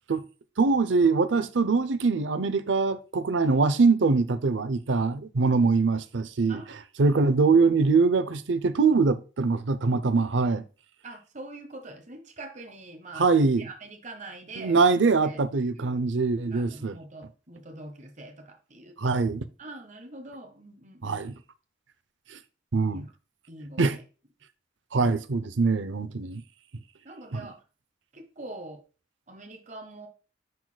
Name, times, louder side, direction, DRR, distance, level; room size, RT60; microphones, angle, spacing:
voice 1, 0.6-6.6 7.0-10.6 13.2-13.7 14.6-17.0 19.0-19.4 21.0-21.3 22.3-22.4 22.7-23.1 23.8-24.0 24.9-26.4 27.3-27.4, right 4 dB, 80° right, 0.7 m, -23 dB
voice 2, 6.5-6.8 11.0-13.3 13.6-14.8 15.2-15.4 15.7-16.1 16.5-19.3 19.6-21.3 22.9-23.1 23.5-24.0 27.0-27.6 28.1-28.8 29.3-30.1, right 2 dB, 40° right, 1.3 m, -44 dB
11.0 x 4.1 x 2.2 m
head